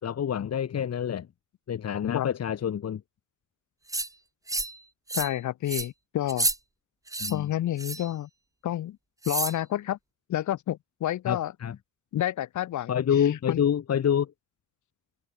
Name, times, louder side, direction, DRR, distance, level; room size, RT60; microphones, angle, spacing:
voice 1, 0.0-1.3 1.7-3.0 7.2-7.5 11.3-11.8 12.9-14.3, left 9 dB, 55° left, 4.1 m, -27 dB
sound 1, 3.9-4.1 4.5-4.8 5.1-5.4 5.7-5.9 6.3-6.6 7.1-7.3 7.8-8.1 9.2-9.6, right 2 dB, 10° right, 1.1 m, -30 dB
voice 2, 5.1-6.5 7.3-8.3 8.6-9.0 9.3-10.0 10.3-11.5 12.1-13.6, left 12 dB, 75° left, 2.5 m, -29 dB
cardioid pair, 90°, 30 cm